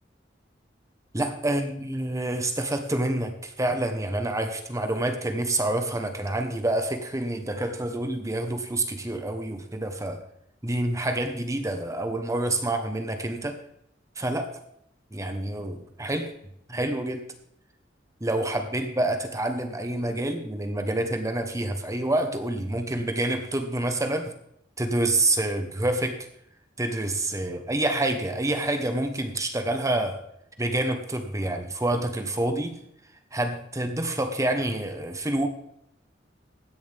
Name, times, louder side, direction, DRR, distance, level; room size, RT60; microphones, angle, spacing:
voice 1, 1.1-10.2 10.6-13.6 14.2-14.6 15.1-16.3 16.7-17.3 18.2-24.3 24.8-26.3 26.8-30.2 30.6-32.8 33.3-35.5, right 1 dB, 15° right, 6 dB, 1.2 m, -27 dB
16.0 x 10.5 x 3.5 m, 0.75 s
head